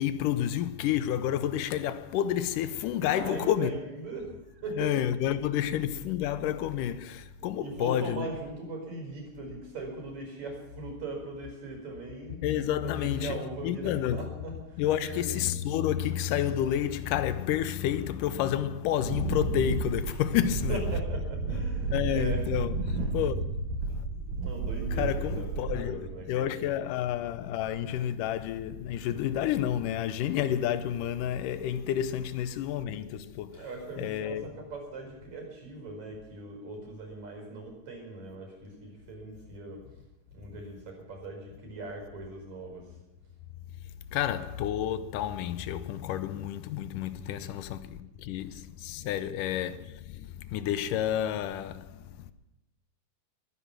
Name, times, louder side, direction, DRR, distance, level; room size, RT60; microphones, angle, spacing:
voice 1, 0.0-3.7 4.8-8.3 12.4-13.4 13.6-14.3 14.8-20.8 21.5-21.6 21.9-24.4 25.0-33.6 34.0-34.5 44.1-52.3, left 10 dB, 90° left, 2.3 m, -30 dB
voice 2, 3.0-5.1 5.6-5.9 7.4-12.4 12.8-15.8 20.0-20.3 20.7-23.1 24.4-26.7 33.5-39.8 40.3-42.9, right 2 dB, 60° right, 6.2 m, -40 dB
Wind, 19.0-26.2, right 3 dB, 90° right, 3.3 m, -32 dB
22.5 x 9.8 x 6.1 m
omnidirectional pair, 3.7 m